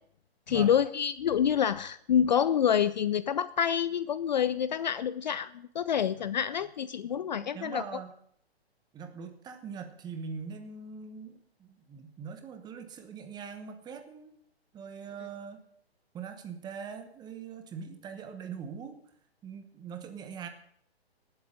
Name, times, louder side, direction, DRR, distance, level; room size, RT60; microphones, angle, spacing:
voice 1, 0.5-7.8, left 8 dB, 45° left, 16 dB, 0.4 m, -27 dB
voice 2, 6.2-6.5 7.1-8.1 8.9-14.3 14.7-15.6 16.1-19.0 19.4-20.5, right 6 dB, 15° right, 7 dB, 1.1 m, -42 dB
18.0 x 8.0 x 5.0 m, 0.66 s
figure-of-eight pair, 125°, 32 cm